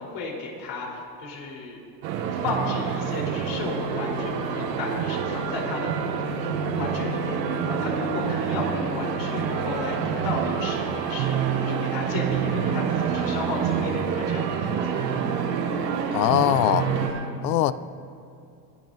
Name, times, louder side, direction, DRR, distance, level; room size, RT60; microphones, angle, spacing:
voice 1, 0.0-1.8 2.3-6.1 6.7-15.0, left 3 dB, 60° left, 4.1 m, -34 dB
sound 1, 2.0-17.1, right 6 dB, 85° right, 3.5 m, -27 dB
voice 2, 16.1-16.9 17.4-17.7, left 13 dB, 85° left, 0.7 m, -21 dB
29.5 x 10.5 x 2.7 m
hypercardioid pair, 95°, 49 cm